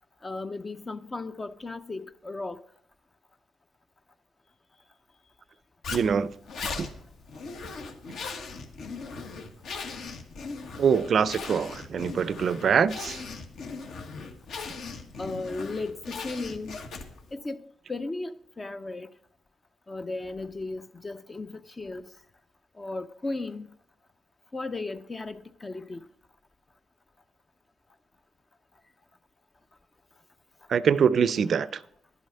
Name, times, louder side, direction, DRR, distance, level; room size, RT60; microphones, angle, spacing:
voice 1, 0.2-2.6 15.2-16.8 17.3-19.1 19.9-22.1 22.8-23.7 24.5-26.0, left 3 dB, 25° left, 0.5 m, -35 dB
Zipper (clothing), 5.8-17.3, left 4 dB, 70° left, 1.6 m, -39 dB
voice 2, 5.9-6.3 6.8-6.9 10.8-13.2 30.7-31.8, right 7 dB, 55° right, 0.4 m, -24 dB
10.5 x 8.0 x 5.5 m
cardioid pair, 90°, 0 cm